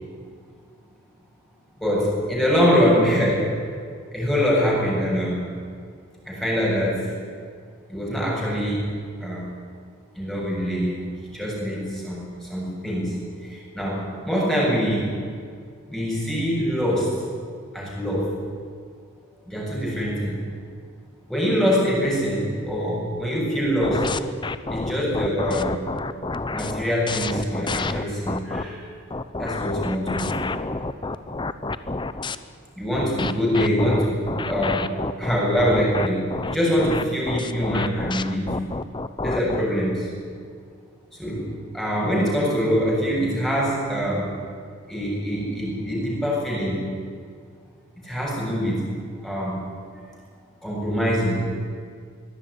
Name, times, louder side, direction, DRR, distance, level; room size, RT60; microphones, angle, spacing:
voice 1, 1.8-3.5 4.1-5.4 6.2-7.0 7.9-8.9 9.2-9.5 10.2-11.0 11.2-15.1 15.9-17.2 17.7-18.3 19.5-20.4 21.3-24.1 24.7-25.8 26.5-28.8 29.4-30.6 32.8-34.2 34.4-38.6 39.2-40.1 41.2-44.3 44.9-46.8 48.0-48.9 49.2-49.6 49.9-50.0 50.6-51.4, equal, ahead, -5 dB, 7.2 m, -24 dB
sound 1, 23.8-28.6 29.1-32.4 32.9-39.6, left 3 dB, 25° left, 0.8 m, -29 dB
22.5 x 17.0 x 9.9 m, 2.1 s
head